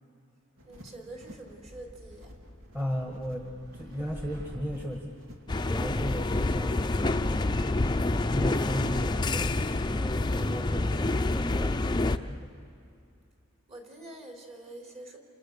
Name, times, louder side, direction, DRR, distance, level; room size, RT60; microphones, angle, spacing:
voice 1, 0.6-2.3 13.7-15.2, right 2 dB, 35° right, 1 dB, 3.7 m, -45 dB
sound 1, 0.6-6.7, left 1 dB, 90° right, 2.5 m, -53 dB
sound 2, 1.4-5.1, equal, 65° right, 4.9 m, -47 dB
voice 2, 2.7-3.5 3.7-5.1 5.7-12.5, equal, 10° right, 1 dB, 1.5 m, -36 dB
sound 3, 5.5-12.2, left 2 dB, 20° left, 0.6 m, -27 dB
28.5 x 28.0 x 6.7 m, 2.5 s
head